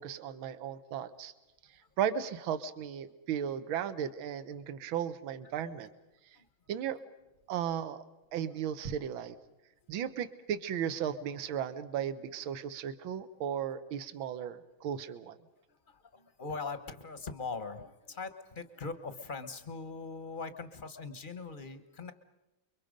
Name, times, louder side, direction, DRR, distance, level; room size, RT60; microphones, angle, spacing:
voice 1, 0.0-1.3 2.0-5.9 6.7-7.0 7.5-8.0 8.3-9.4 9.9-15.4, right 9 dB, 70° right, 12 dB, 1.8 m, -35 dB
voice 2, 15.7-22.1, left 4 dB, 30° left, 10 dB, 1.0 m, -41 dB
29.5 x 23.0 x 5.2 m, 0.97 s
omnidirectional pair, 2.3 m